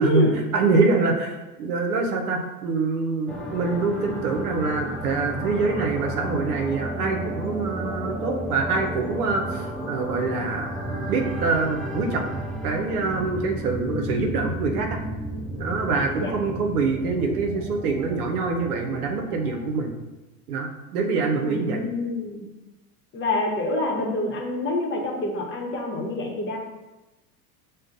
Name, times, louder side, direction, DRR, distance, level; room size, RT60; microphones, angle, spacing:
voice 1, 0.0-0.3 16.1-16.3 21.4-22.4 23.1-26.6, left 2 dB, 25° left, 0 dB, 0.9 m, -26 dB
voice 2, 0.5-15.0 15.6-19.9 20.5-21.8, right 4 dB, 80° right, 2 dB, 0.7 m, -25 dB
sound 1, 3.3-19.7, equal, ahead, 0.4 m, -33 dB
6.3 x 2.2 x 2.5 m, 1.1 s
hypercardioid pair, 80°, 44 cm